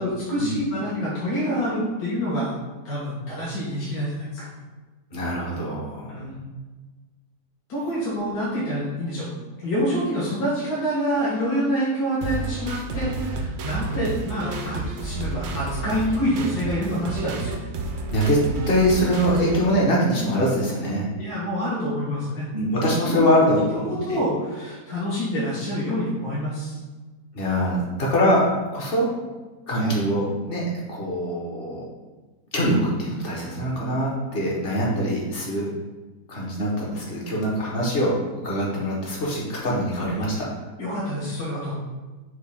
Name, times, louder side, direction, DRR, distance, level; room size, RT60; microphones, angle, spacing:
voice 1, 0.0-2.5 2.8-4.5 6.1-6.4 7.7-9.3 9.6-17.5 21.2-22.5 23.0-23.6 23.9-26.8 29.7-30.0 40.8-41.8, equal, 65° left, -8 dB, 1.6 m, -27 dB
voice 2, 5.1-6.2 18.1-21.1 22.5-23.9 27.3-28.4 28.7-29.1 29.7-31.8 32.5-35.7 36.3-40.5, equal, 40° left, -4 dB, 1.1 m, -23 dB
sound 1, 12.2-19.6, right 3 dB, 80° right, 0.6 m, -30 dB
6.0 x 2.4 x 3.4 m, 1.3 s
omnidirectional pair, 1.7 m